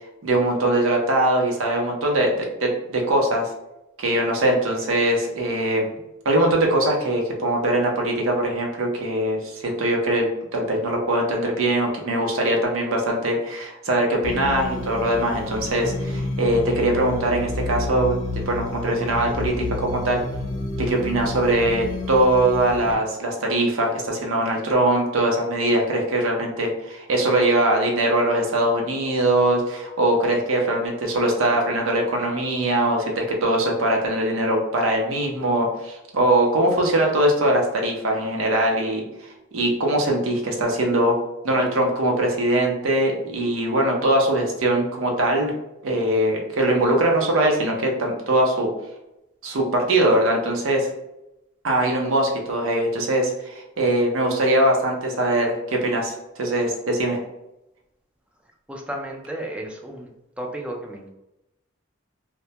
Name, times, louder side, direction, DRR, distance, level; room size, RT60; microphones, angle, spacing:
voice 1, 0.2-3.5 4.0-5.9 6.2-18.2 18.5-20.2 20.8-41.2 41.4-45.5 45.8-48.7 49.4-50.9 51.6-57.2, right 1 dB, 85° right, 0 dB, 0.6 m, -22 dB
sound 1, 14.2-22.9, left 2 dB, 70° left, 0.6 m, -30 dB
voice 2, 58.7-60.1 60.4-61.1, right 1 dB, 5° right, 0 dB, 0.3 m, -33 dB
2.1 x 2.1 x 2.7 m, 0.91 s
head